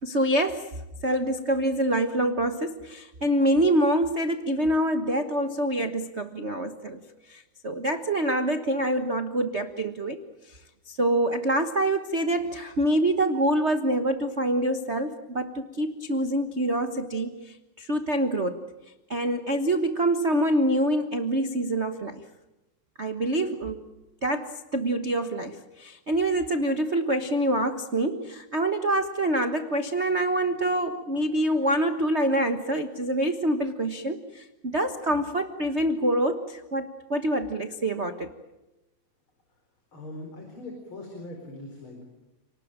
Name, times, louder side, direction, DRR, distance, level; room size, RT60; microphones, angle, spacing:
voice 1, 0.0-0.7 1.0-7.0 7.3-10.2 10.5-10.6 10.9-18.6 19.1-22.2 23.0-23.8 24.2-38.3, right 1 dB, 75° right, 8 dB, 0.6 m, -26 dB
voice 2, 39.9-42.0, left 2 dB, 40° left, 3 dB, 5.0 m, -41 dB
29.5 x 19.5 x 8.9 m, 1.0 s
omnidirectional pair, 3.6 m